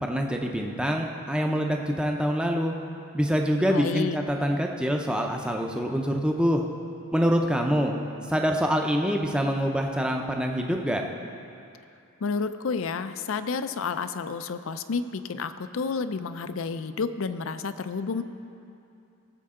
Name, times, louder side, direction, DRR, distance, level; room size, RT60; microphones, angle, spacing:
voice 1, 0.0-2.7 3.1-6.6 7.1-7.9 8.3-11.1, equal, 5° right, 2 dB, 0.6 m, -25 dB
voice 2, 3.7-4.2 12.2-18.2, left 5 dB, 65° left, 11 dB, 0.5 m, -30 dB
18.0 x 7.7 x 3.7 m, 2.6 s
head